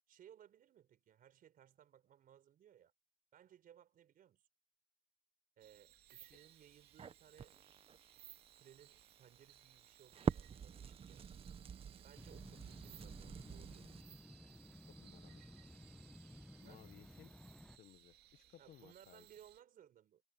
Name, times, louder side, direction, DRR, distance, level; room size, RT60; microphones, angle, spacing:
voice 1, 0.1-2.9 3.3-4.5 5.6-7.5 8.5-11.3 12.0-13.9 16.6-16.9 18.6-20.2, right 10 dB, 55° right, 4.2 m, -63 dB
sound 1, 5.6-19.6, right 13 dB, 75° right, 2.2 m, -64 dB
Crackle, 6.2-14.0, right 7 dB, 35° right, 1.1 m, -46 dB
sound 2, 12.1-17.8, left 1 dB, 5° left, 0.9 m, -56 dB
voice 2, 14.9-15.4 16.6-17.3 17.7-19.3, left 12 dB, 65° left, 1.2 m, -61 dB
cardioid pair, 110°, 17 cm